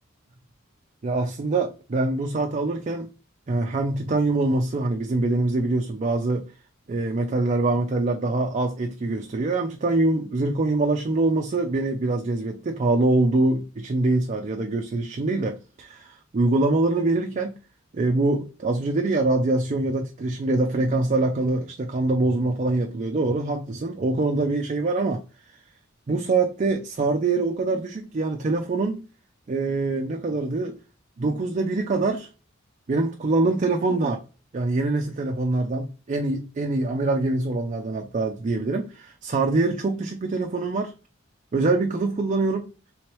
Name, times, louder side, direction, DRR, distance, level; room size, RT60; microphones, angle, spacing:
voice 1, 1.0-3.1 3.5-6.4 6.9-17.6 17.9-25.2 26.1-29.0 29.5-30.7 31.2-32.3 32.9-34.2 34.5-40.9 41.5-42.7, right 2 dB, 35° right, 0.4 m, -24 dB
3.4 x 3.2 x 3.0 m
head